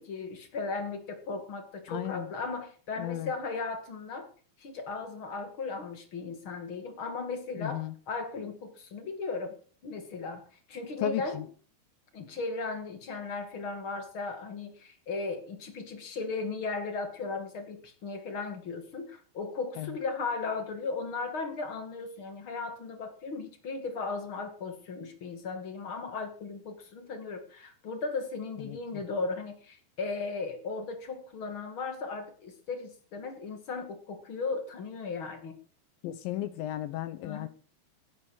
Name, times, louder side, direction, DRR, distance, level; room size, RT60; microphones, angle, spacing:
voice 1, 0.0-4.3 4.6-9.6 9.8-11.4 12.1-35.5 37.2-37.5, left 4 dB, 40° left, 2.2 m, -36 dB
voice 2, 1.9-2.3 3.0-3.3 7.6-7.9 11.0-11.5 19.8-20.0 28.7-29.0 36.0-37.5, left 13 dB, 75° left, 2.2 m, -35 dB
17.5 x 11.0 x 4.8 m
omnidirectional pair, 4.8 m